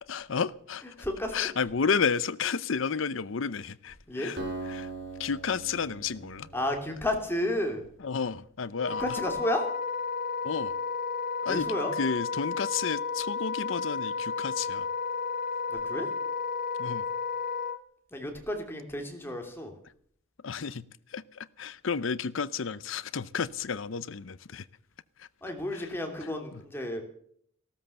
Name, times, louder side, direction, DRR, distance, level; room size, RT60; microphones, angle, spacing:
voice 1, 0.0-0.9 1.3-4.4 4.7-4.9 5.2-6.5 8.0-9.1 10.4-10.7 11.4-11.7 12.0-14.9 16.8-17.1 20.4-24.7 25.2-25.3 25.7-25.9 26.5-26.6, left 5 dB, 70° left, 0.6 m, -32 dB
voice 2, 1.0-1.5 4.1-4.3 6.5-7.8 9.0-9.6 11.5-11.9 15.7-16.1 18.1-19.7 25.4-27.0, left 1 dB, 10° left, 2.7 m, -32 dB
Acoustic guitar, 4.4-7.9, right 2 dB, 60° right, 4.5 m, -41 dB
Wind instrument woodwind instrument, 8.8-17.8, left 5 dB, 45° left, 1.1 m, -32 dB
15.5 x 13.0 x 6.9 m
head